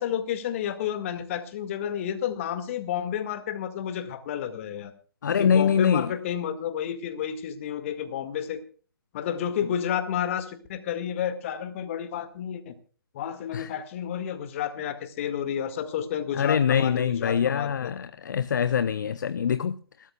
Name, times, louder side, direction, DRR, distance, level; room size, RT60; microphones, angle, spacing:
voice 1, 0.0-4.9 5.4-8.6 9.1-12.8 13.1-17.9, left 9 dB, 35° left, 2.0 m, -31 dB
voice 2, 5.2-6.1 13.5-13.7 16.3-19.8, left 7 dB, 50° left, 0.7 m, -24 dB
29.0 x 13.0 x 2.3 m
figure-of-eight pair, 135°, 12 cm